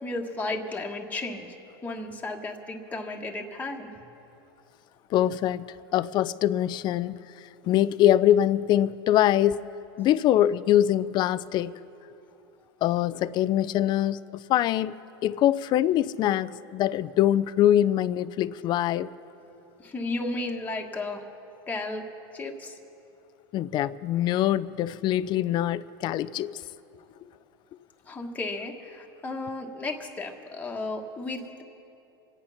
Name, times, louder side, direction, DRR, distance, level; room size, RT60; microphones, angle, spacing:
voice 1, 0.0-1.5 1.8-3.9 19.8-21.2 21.7-22.0 22.3-22.7 28.1-31.6, left 2 dB, 10° left, 1.4 m, -34 dB
voice 2, 5.1-7.2 7.6-9.6 10.0-11.8 12.8-14.2 14.5-14.9 15.2-19.1 23.5-26.6, left 12 dB, 35° left, 0.4 m, -23 dB
26.0 x 8.7 x 5.8 m
supercardioid pair, 120°, 13 cm